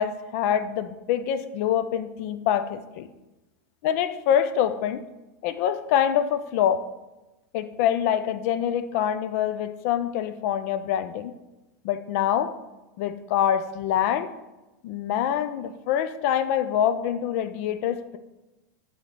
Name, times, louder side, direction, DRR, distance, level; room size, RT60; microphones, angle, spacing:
voice 1, 0.0-3.1 3.8-5.0 5.4-6.9 7.5-11.3 11.8-12.6 13.0-14.3 14.8-18.2, left 9 dB, 55° left, 11 dB, 0.4 m, -25 dB
8.3 x 3.1 x 3.9 m, 1.0 s
hypercardioid pair, 125°, 9 cm